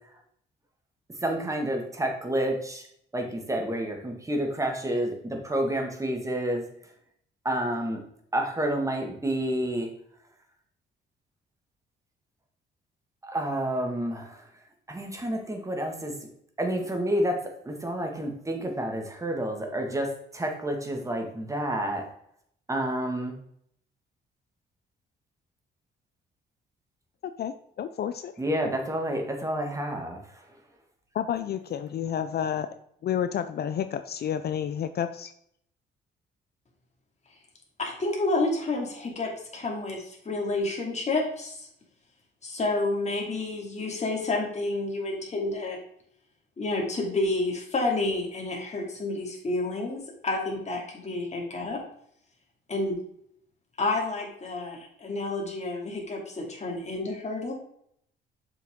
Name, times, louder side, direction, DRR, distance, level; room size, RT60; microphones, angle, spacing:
voice 1, 1.2-2.8 3.1-6.7 7.4-8.0 8.3-9.9 13.2-14.4 14.9-16.1 16.6-22.1 22.7-23.4 28.4-30.2, right 1 dB, 15° right, 2 dB, 1.8 m, -29 dB
voice 2, 27.2-28.3 31.1-32.7 33.0-35.3, left 9 dB, 55° left, 11 dB, 0.5 m, -30 dB
voice 3, 37.8-41.7 42.4-45.8 46.6-51.8 52.7-53.0 53.8-57.5, left 2 dB, 35° left, 0 dB, 2.6 m, -29 dB
6.9 x 6.0 x 3.7 m, 0.69 s
cardioid pair, 90°, 20 cm